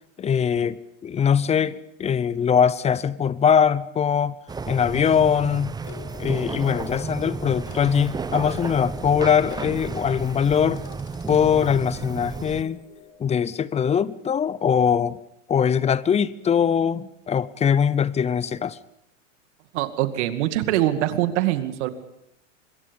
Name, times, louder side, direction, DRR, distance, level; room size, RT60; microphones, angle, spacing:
voice 1, 0.2-4.4 4.7-5.7 6.2-10.8 11.3-12.8 13.2-15.2 15.5-18.8, left 7 dB, 15° left, 0.7 m, -22 dB
sound 1, 4.5-12.6, right 4 dB, 10° right, 0.8 m, -32 dB
sound 2, 5.8-13.1, left 8 dB, 45° left, 4.1 m, -46 dB
voice 2, 19.7-21.9, right 14 dB, 60° right, 2.3 m, -23 dB
25.0 x 22.0 x 5.3 m
hypercardioid pair, 110°, 39 cm